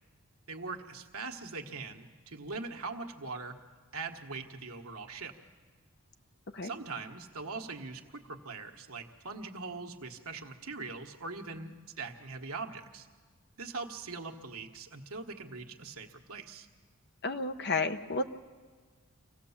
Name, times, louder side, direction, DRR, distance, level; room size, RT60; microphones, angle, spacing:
voice 1, 0.5-3.6 3.9-5.3 6.6-11.7 12.0-13.1 13.6-16.7, right 4 dB, 75° right, 3 dB, 1.5 m, -41 dB
voice 2, 17.2-18.2, left 3 dB, 50° left, 8 dB, 0.9 m, -31 dB
25.5 x 17.0 x 7.3 m, 1.5 s
head